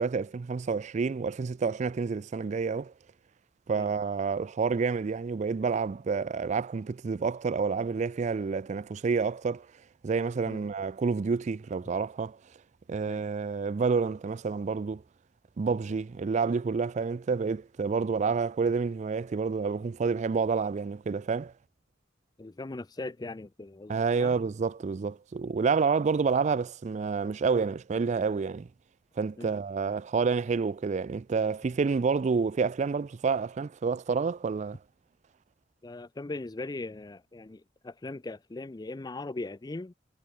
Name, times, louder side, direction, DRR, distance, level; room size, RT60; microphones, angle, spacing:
voice 1, 0.0-2.9 3.7-9.7 10.0-12.4 12.9-15.0 15.6-21.5 23.9-28.7 29.2-34.8, right 5 dB, 40° right, 0.3 m, -29 dB
voice 2, 22.4-24.3 29.4-29.5 35.8-39.9, left 2 dB, 20° left, 0.4 m, -39 dB
head